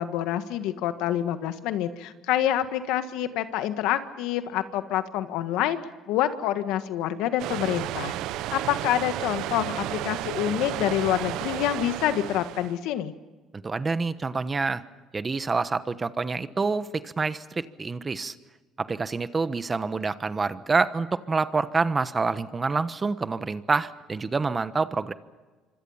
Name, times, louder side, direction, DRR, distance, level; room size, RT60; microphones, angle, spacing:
voice 1, 0.0-5.8 6.1-8.1 8.5-13.1, left 12 dB, 80° left, 10 dB, 1.6 m, -27 dB
sound 1, 7.4-12.8, right 14 dB, 75° right, 0.8 m, -32 dB
voice 2, 13.5-14.8 15.1-18.3 18.8-25.1, right 4 dB, 25° right, 13 dB, 1.1 m, -27 dB
26.5 x 25.0 x 5.7 m, 1.3 s
cardioid pair, 110°, 0 cm